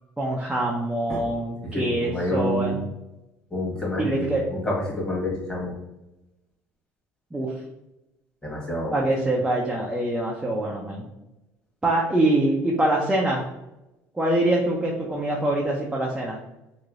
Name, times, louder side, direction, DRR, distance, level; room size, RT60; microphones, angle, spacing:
voice 1, 0.2-2.8 4.0-4.4 7.3-7.5 8.9-11.0 11.8-13.4 14.1-16.4, right 1 dB, 10° right, -2 dB, 0.5 m, -24 dB
voice 2, 1.6-2.9 3.5-5.7 8.4-9.0, left 1 dB, 15° left, -4 dB, 1.3 m, -28 dB
3.0 x 2.6 x 2.5 m, 0.94 s
supercardioid pair, 95°, 7 cm